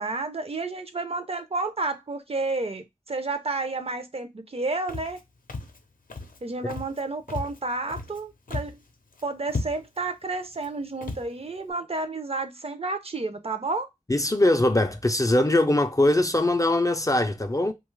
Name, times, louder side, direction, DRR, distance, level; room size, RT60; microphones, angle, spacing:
voice 1, 0.0-5.2 6.4-8.8 9.2-13.9, right 3 dB, 45° right, 0.5 m, -31 dB
Walk footsteps, 4.9-5.2 5.5-5.8 6.1-6.4 6.7-7.0 7.3-8.2 8.5-8.8 9.1-9.2 9.5-10.0 10.5-10.7 11.0-11.3, left 3 dB, 75° left, 0.5 m, -34 dB
voice 2, 14.1-17.7, left 1 dB, 25° left, 0.3 m, -21 dB
2.8 x 2.3 x 3.0 m
wide cardioid pair, 60°, 14 cm